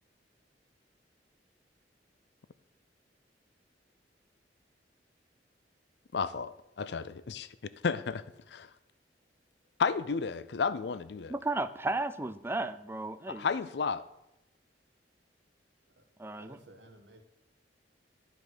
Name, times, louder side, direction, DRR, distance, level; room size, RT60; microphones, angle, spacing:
voice 1, 6.1-7.5 7.8-8.7 9.8-11.3 13.3-14.0, left 5 dB, 65° left, 15 dB, 0.5 m, -32 dB
voice 2, 11.3-13.5 16.2-16.6, right 2 dB, 15° right, 12 dB, 0.4 m, -34 dB
voice 3, 16.3-17.2, right 1 dB, 85° right, 6 dB, 1.4 m, -55 dB
12.5 x 5.4 x 6.2 m, 0.88 s
head